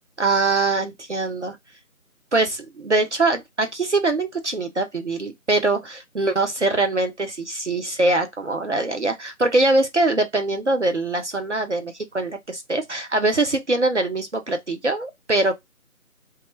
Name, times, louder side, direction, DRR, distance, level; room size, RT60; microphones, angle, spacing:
voice 1, 0.2-1.6 2.3-15.5, right 2 dB, 55° right, 0.5 m, -23 dB
2.2 x 2.0 x 3.1 m
figure-of-eight pair, 180°, 43 cm